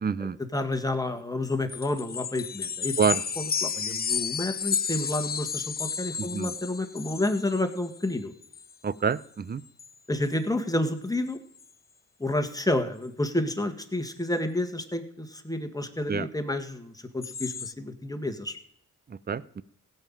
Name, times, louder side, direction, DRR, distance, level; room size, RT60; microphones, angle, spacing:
voice 1, 0.0-0.4 3.0-3.2 6.2-6.5 8.8-9.6 16.1-16.3 19.1-19.4, right 6 dB, 30° right, 19 dB, 0.6 m, -27 dB
voice 2, 0.5-2.9 3.4-8.3 10.1-11.4 12.2-18.6, left 1 dB, 10° left, 7 dB, 1.9 m, -30 dB
sound 1, 1.4-8.1 8.4-8.7 9.1-9.2 9.7-9.9 10.2-10.3 10.9-11.0 11.3-11.6 17.2-17.7, left 6 dB, 30° left, 0.4 m, -32 dB
16.0 x 5.8 x 9.0 m, 0.65 s
cardioid pair, 65°, 33 cm